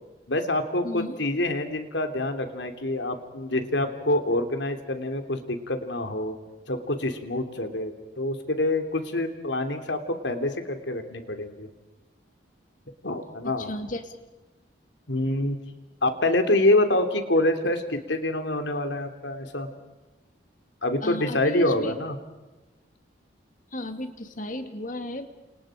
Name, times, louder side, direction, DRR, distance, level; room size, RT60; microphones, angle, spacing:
voice 1, 0.3-6.4 6.7-11.7 13.0-13.7 15.1-15.6 16.0-19.7 20.8-22.2, left 1 dB, 85° left, 6 dB, 3.2 m, -26 dB
voice 2, 0.8-1.2 13.4-14.1 21.0-21.9 23.7-25.3, left 1 dB, 45° left, 7 dB, 2.3 m, -34 dB
30.0 x 29.0 x 5.1 m, 1.1 s
head